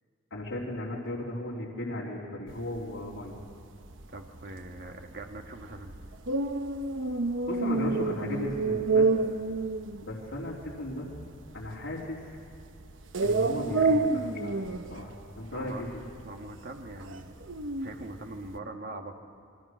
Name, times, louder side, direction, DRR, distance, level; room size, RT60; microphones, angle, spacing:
voice 1, 0.3-3.4 7.5-9.0 10.0-11.1 11.5-12.2 13.2-16.0, left 1 dB, 75° left, -6 dB, 3.4 m, -36 dB
sound 1, 2.5-18.6, right 3 dB, 75° right, 1.0 m, -30 dB
voice 2, 4.1-5.9 15.5-15.9 16.2-17.4 17.8-19.1, right 2 dB, 50° right, 4 dB, 1.8 m, -42 dB
28.5 x 22.5 x 6.4 m, 2.2 s
head